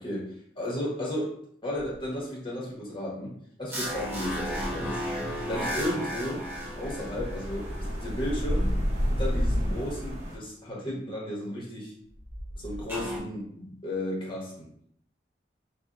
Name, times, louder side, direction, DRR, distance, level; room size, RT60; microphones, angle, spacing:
voice 1, 0.0-1.4 1.6-3.3 3.6-5.0 5.5-6.4 6.8-8.8 9.1-11.9 12.6-14.7, left 1 dB, 30° left, -4 dB, 1.0 m, -34 dB
sound 1, 1.7-2.2 3.8-5.3 7.3-8.0 9.4-10.2 12.0-13.4, equal, 55° left, 0.8 m, -45 dB
sound 2, 3.7-8.1 12.9-13.2, equal, 15° right, 0.7 m, -34 dB
sound 3, 4.2-10.4, equal, 45° right, 0.8 m, -31 dB
3.4 x 2.1 x 2.4 m, 0.66 s
head